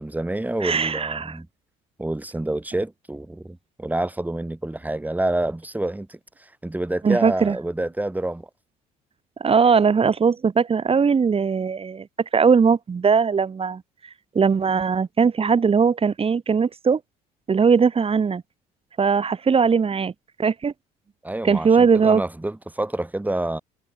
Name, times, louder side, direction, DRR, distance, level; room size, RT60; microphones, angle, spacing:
voice 1, 0.0-1.5 2.0-8.5 21.2-23.6, right 1 dB, 10° right, 4.7 m, -28 dB
voice 2, 0.6-1.3 7.0-7.6 9.4-12.1 12.3-13.8 14.3-17.0 17.5-18.4 19.0-20.1 20.4-20.7 21.4-22.2, right 5 dB, 35° right, 4.2 m, -19 dB
supercardioid pair, 75°, 17 cm